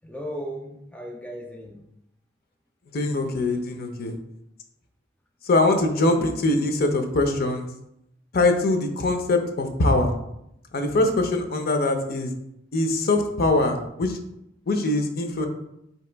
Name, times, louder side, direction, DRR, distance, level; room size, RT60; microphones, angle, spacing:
voice 1, 0.0-1.9 6.0-6.2, equal, 5° left, 1 dB, 0.3 m, -36 dB
voice 2, 2.9-4.1 5.4-7.7 8.3-10.1 10.7-12.3 12.7-14.1 14.7-15.5, left 2 dB, 55° left, 5 dB, 0.6 m, -22 dB
4.6 x 2.9 x 3.3 m, 0.80 s
head